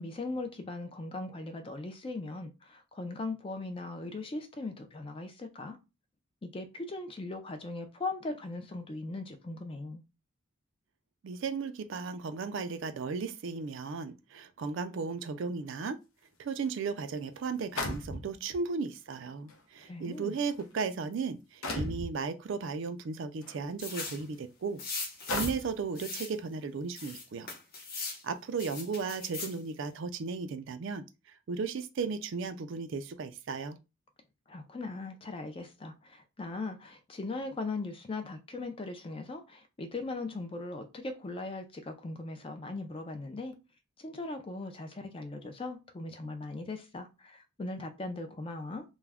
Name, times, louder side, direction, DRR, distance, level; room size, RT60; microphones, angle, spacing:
voice 1, 0.0-5.8 6.4-10.0 19.8-20.3 34.5-43.6 44.0-48.8, left 2 dB, 25° left, 0.3 m, -39 dB
voice 2, 11.2-16.0 16.4-24.8 25.3-27.5 28.2-33.8, right 5 dB, 60° right, 0.3 m, -35 dB
sound 1, 16.7-16.8 17.8-18.6 19.5-19.6 20.4-20.6 21.6-22.1 23.4-23.6 24.2-24.3 25.3-25.8, left 2 dB, 80° left, 0.6 m, -35 dB
sound 2, 23.8-24.2 24.8-25.6 25.9-26.3 27.0-28.2 28.6-29.6, left 3 dB, 45° left, 0.8 m, -39 dB
2.3 x 2.1 x 3.3 m
head